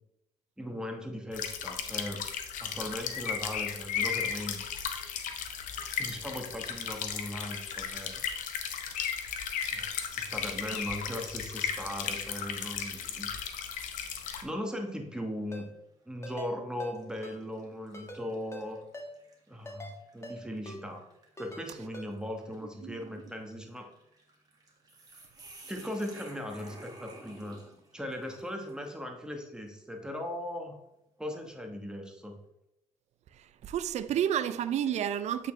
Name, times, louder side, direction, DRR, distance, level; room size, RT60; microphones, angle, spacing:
voice 1, 0.6-2.2 2.6-4.6 5.8-8.3 9.7-13.3 14.4-15.7 16.1-18.8 19.5-21.0 21.4-23.9 25.7-30.8 31.2-32.4, equal, 5° right, 1.2 m, -38 dB
sound 1, 1.3-14.4, left 7 dB, 80° left, 0.7 m, -35 dB
sound 2, 14.0-14.5 15.0-15.1 16.1-16.3 16.9-29.0, right 2 dB, 30° right, 1.8 m, -55 dB
Ringtone, 15.5-15.6 16.2-16.5 16.8-16.9 17.2-17.4 17.9-18.2 18.5-18.6 18.9-19.1 19.7-19.9 20.2-20.4 20.7-20.8 21.4-21.6 21.9-22.1, left 1 dB, 20° left, 1.5 m, -43 dB
voice 2, 33.6-35.5, right 10 dB, 60° right, 0.4 m, -30 dB
8.2 x 4.2 x 3.1 m
cardioid pair, 80°, 13 cm